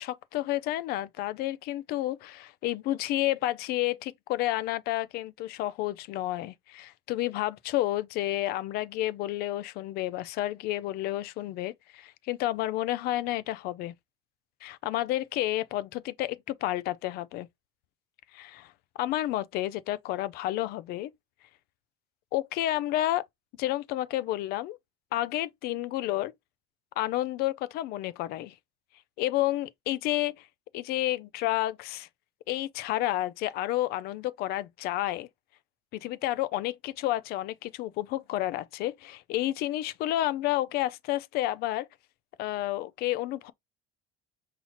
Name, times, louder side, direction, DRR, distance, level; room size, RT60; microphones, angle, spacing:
voice 1, 0.0-13.9 14.6-17.5 18.3-18.7 19.0-21.1 22.3-23.3 23.6-24.8 25.1-26.3 27.0-28.5 29.2-30.5 30.7-32.1 32.5-35.3 36.0-41.9 42.4-43.5, left 15 dB, 50° left, 0.4 m, -30 dB
5.6 x 2.8 x 2.9 m
cardioid pair, 165°, 21 cm